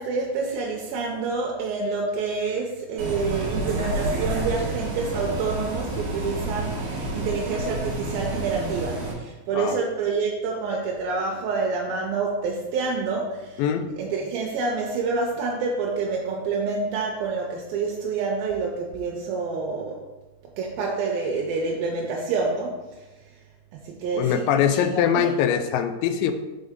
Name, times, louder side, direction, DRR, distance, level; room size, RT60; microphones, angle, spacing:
voice 1, 0.0-13.6 14.0-20.0 20.6-22.9 23.7-25.3, right 4 dB, 80° right, -1 dB, 2.4 m, -27 dB
Bus, 3.0-9.1, right 1 dB, 55° right, 1.9 m, -29 dB
voice 2, 24.1-26.3, left 8 dB, 80° left, 8 dB, 2.2 m, -22 dB
5.3 x 4.9 x 3.6 m, 1.1 s
omnidirectional pair, 4.3 m